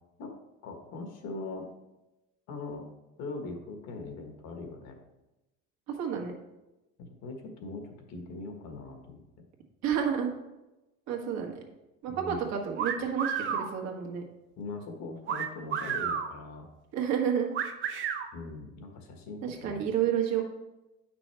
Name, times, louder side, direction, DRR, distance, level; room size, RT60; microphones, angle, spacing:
voice 1, 0.6-1.7 2.5-2.9 3.2-5.0 7.2-9.2 12.1-12.5 14.6-16.7 18.3-19.8, left 3 dB, 65° left, 4 dB, 1.5 m, -41 dB
voice 2, 5.9-6.3 9.8-10.3 11.1-11.5 12.0-14.2 16.9-17.5 19.4-20.4, right 8 dB, 65° right, 1 dB, 1.5 m, -30 dB
sound 1, 12.8-13.7 15.3-16.3 17.5-18.3, right 7 dB, 40° right, 0.7 m, -31 dB
9.1 x 6.0 x 3.4 m, 0.99 s
cardioid pair, 160°, 29 cm